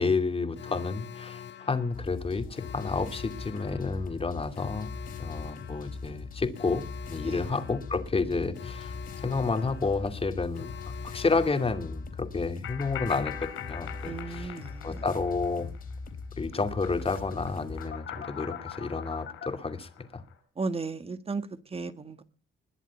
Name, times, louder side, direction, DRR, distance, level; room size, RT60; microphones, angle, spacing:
voice 1, 0.0-4.9 5.2-14.6 14.8-15.7 16.4-20.2, left 4 dB, 30° left, 2.4 m, -30 dB
Alarm, 0.5-12.4 17.9-19.5, left 9 dB, 65° left, 1.5 m, -45 dB
sound 1, 1.9-17.9, left 4 dB, 45° left, 3.4 m, -41 dB
sound 2, 12.6-16.1 16.4-20.3, left 10 dB, 85° left, 6.8 m, -43 dB
voice 2, 14.1-15.0 20.6-22.2, right 4 dB, 30° right, 1.7 m, -35 dB
21.0 x 7.3 x 8.3 m
cardioid pair, 90°, 20 cm